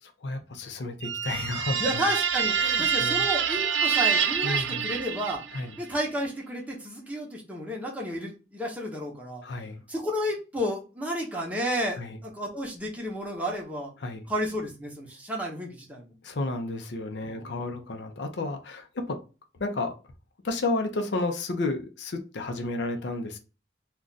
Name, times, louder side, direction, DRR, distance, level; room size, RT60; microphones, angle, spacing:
voice 1, 0.0-2.0 2.6-3.3 4.4-4.9 5.5-5.7 9.4-9.8 12.0-12.2 14.0-14.3 16.2-19.2 19.6-20.0 20.4-23.4, left 2 dB, 80° left, 0.5 m, -32 dB
sound 1, 1.0-5.7, right 7 dB, 85° right, 0.5 m, -26 dB
voice 2, 1.8-5.4 5.8-9.4 9.9-13.9 14.3-16.1 17.3-17.8, equal, 10° right, 0.8 m, -32 dB
2.4 x 2.2 x 3.8 m
head